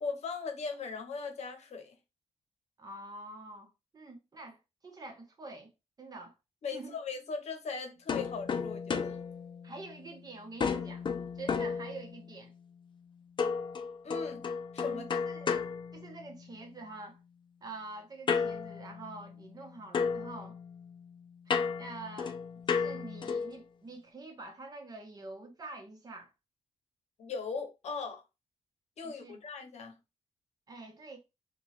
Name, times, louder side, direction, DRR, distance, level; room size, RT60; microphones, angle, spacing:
voice 1, 0.0-2.0 6.6-9.2 14.0-15.2 27.2-28.2 29.0-30.0, left 5 dB, 70° left, 0.8 m, -39 dB
voice 2, 2.8-5.7 6.0-6.4 6.7-7.0 9.6-12.5 14.8-15.6 15.9-17.2 17.6-20.6 21.8-22.4 22.7-26.3 29.0-29.4 30.7-31.2, right 2 dB, 35° right, 0.9 m, -46 dB
sound 1, 8.1-10.2 10.6-12.4 13.4-16.6 18.3-19.6 19.9-23.6, left 5 dB, 40° left, 0.4 m, -34 dB
2.9 x 2.3 x 4.1 m
wide cardioid pair, 130°, 12 cm